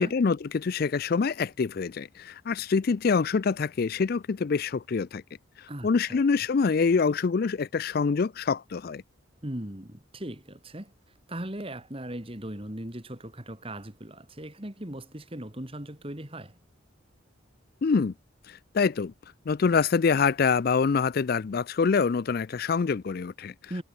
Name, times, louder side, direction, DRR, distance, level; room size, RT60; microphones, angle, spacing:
voice 1, 0.0-5.2 5.6-9.0 17.8-18.1 18.5-19.1 19.5-23.5, left 5 dB, 45° left, 0.4 m, -25 dB
voice 2, 5.7-6.2 9.4-10.9 11.3-16.6 23.7-23.8, right 1 dB, 25° right, 2.3 m, -38 dB
head